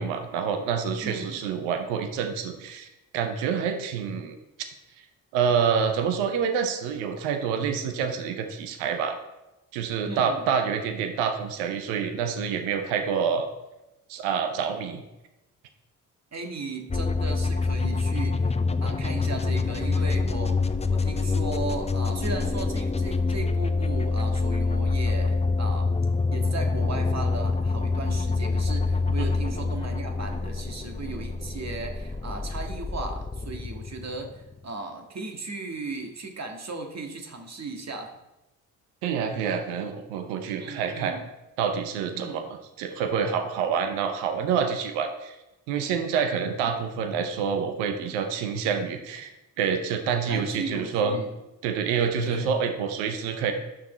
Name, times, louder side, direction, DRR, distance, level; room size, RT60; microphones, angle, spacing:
voice 1, 0.0-2.9 3.1-4.3 5.3-9.2 9.7-13.5 14.1-15.0 29.2-29.3 39.0-41.1 41.6-42.4 42.8-45.3 45.7-51.2 51.6-53.5, right 6 dB, 85° right, 6 dB, 0.8 m, -27 dB
voice 2, 1.0-1.4 10.0-10.4 16.3-18.5 18.8-25.9 26.3-38.1 40.6-41.2 42.1-42.4 46.5-46.7 50.3-51.3 52.2-52.5, right 3 dB, 40° right, 3 dB, 1.7 m, -36 dB
sound 1, 16.9-34.6, left 3 dB, 15° left, 0.6 m, -26 dB
9.9 x 5.9 x 4.3 m, 0.97 s
hypercardioid pair, 45°, 40 cm